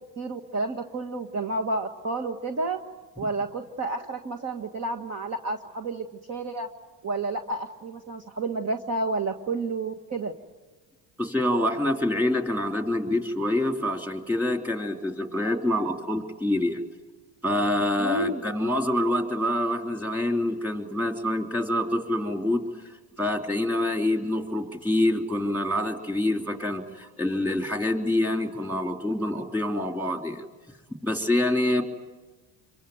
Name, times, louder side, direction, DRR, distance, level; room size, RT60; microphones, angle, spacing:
voice 1, 0.2-2.8 3.2-6.7 7.0-10.3 18.0-18.4, right 2 dB, 30° right, 3 dB, 1.5 m, -30 dB
voice 2, 11.2-16.8 17.4-30.5 31.0-31.8, left 1 dB, 5° right, 5 dB, 3.2 m, -26 dB
27.5 x 23.5 x 9.3 m, 1.2 s
supercardioid pair, 105°, 49 cm